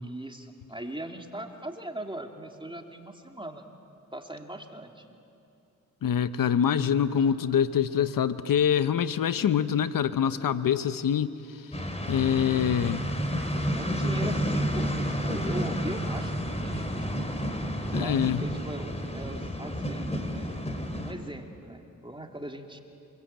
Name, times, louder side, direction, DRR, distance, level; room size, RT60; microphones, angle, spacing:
voice 1, 0.0-3.7 4.1-5.1 13.8-17.4 17.9-20.5 21.0-22.8, right 1 dB, 15° right, 3 dB, 2.7 m, -40 dB
voice 2, 6.0-11.8 12.1-13.0 17.9-18.4, left 8 dB, 85° left, 13 dB, 0.8 m, -25 dB
sound 1, 11.7-21.1, equal, 20° left, 3.8 m, -30 dB
27.0 x 21.5 x 8.8 m, 2.7 s
cardioid pair, 45°, 33 cm